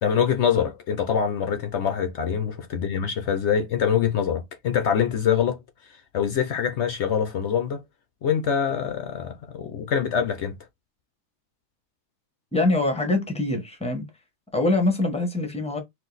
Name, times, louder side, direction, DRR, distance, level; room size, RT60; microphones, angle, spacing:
voice 1, 0.0-5.6 6.1-7.8 8.2-10.5, left 7 dB, 65° left, 0.7 m, -24 dB
voice 2, 12.5-14.0 14.5-15.8, left 2 dB, 5° left, 0.6 m, -24 dB
4.4 x 2.5 x 3.9 m
omnidirectional pair, 1.8 m